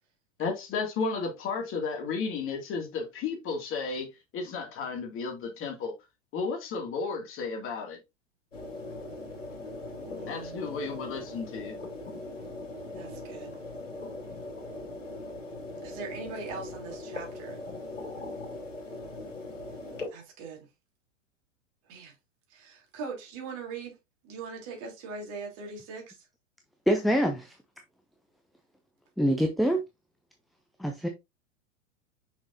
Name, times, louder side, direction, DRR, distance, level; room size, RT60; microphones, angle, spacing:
voice 1, 0.4-4.1 4.3-5.9 6.3-8.0 10.3-11.8, left 4 dB, 35° left, 2.3 m, -33 dB
sound 1, 8.5-20.1, left 2 dB, 75° left, 3.0 m, -40 dB
voice 2, 10.2-10.6 12.9-13.6 15.8-17.6 20.1-20.7 21.9-22.1 22.5-24.0 24.2-26.3, right 4 dB, 40° right, 3.2 m, -41 dB
voice 3, 26.9-27.5 29.2-29.8 30.8-31.1, equal, ahead, 0.3 m, -25 dB
6.1 x 6.0 x 2.6 m
figure-of-eight pair, 95°, 38 cm